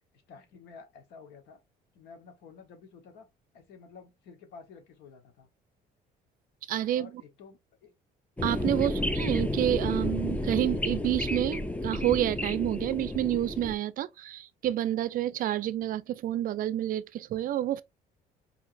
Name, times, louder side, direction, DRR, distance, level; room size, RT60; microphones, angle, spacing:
voice 1, 0.1-1.6 1.9-3.3 3.5-5.5 6.9-7.9 8.8-9.1, left 5 dB, 85° left, 1.1 m, -51 dB
voice 2, 6.7-7.1 8.4-17.8, right 12 dB, 55° right, 0.4 m, -29 dB
sound 1, 8.4-13.7, left 1 dB, 10° left, 0.4 m, -31 dB
4.5 x 2.8 x 2.6 m
cardioid pair, 110°, 17 cm